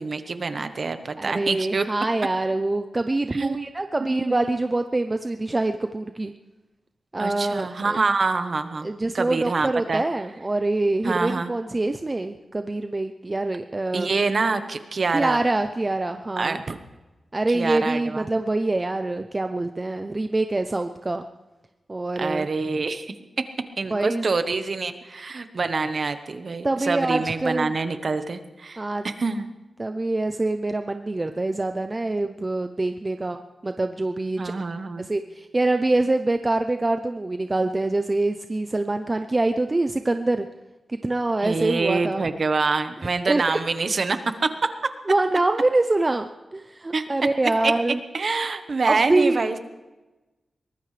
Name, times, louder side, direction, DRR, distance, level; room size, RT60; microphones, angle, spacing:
voice 1, 0.0-1.8 3.3-3.7 4.0-4.5 7.2-8.9 9.1-10.0 11.0-11.5 13.9-15.4 16.4-16.8 17.5-18.3 22.2-23.5 23.8-29.5 34.4-35.1 41.4-44.7 46.9-47.0 47.6-47.7 48.1-49.6, right 4 dB, 45° right, 9 dB, 1.1 m, -26 dB
voice 2, 1.2-6.3 7.1-8.0 8.8-14.1 15.1-16.6 17.3-21.3 21.9-22.5 23.9-24.2 26.6-27.7 28.8-29.1 29.8-34.5 35.0-40.5 40.9-42.2 43.3-43.6 45.1-48.0 48.9-49.4, right 2 dB, 20° right, 7 dB, 0.6 m, -25 dB
23.0 x 19.0 x 3.3 m, 1.1 s
wide cardioid pair, 165°, 0 cm